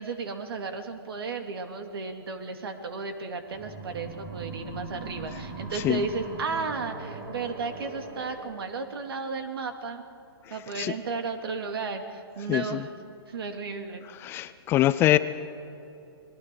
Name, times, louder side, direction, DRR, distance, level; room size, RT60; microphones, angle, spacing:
voice 1, 0.0-10.0 10.5-12.9 13.3-14.1, right 4 dB, 70° right, 6 dB, 2.5 m, -34 dB
sound 1, 3.5-8.6, right 3 dB, 25° right, 3.5 m, -40 dB
voice 2, 12.5-12.8 14.2-15.2, left 14 dB, 20° left, 14 dB, 0.4 m, -23 dB
29.5 x 20.5 x 4.6 m, 2.9 s
hypercardioid pair, 145°, 13 cm